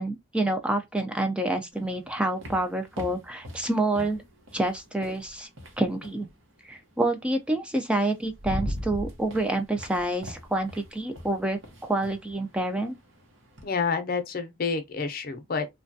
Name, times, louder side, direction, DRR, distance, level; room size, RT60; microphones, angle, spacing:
voice 1, 0.0-4.2 4.5-5.5 5.8-6.3 6.7-12.9, right 2 dB, 5° right, 0.3 m, -28 dB
sound 1, 1.7-6.3 7.6-7.7 8.1-13.7, equal, 85° right, 0.9 m, -40 dB
voice 2, 13.6-15.7, left 5 dB, 50° left, 0.6 m, -29 dB
3.2 x 2.2 x 2.6 m
head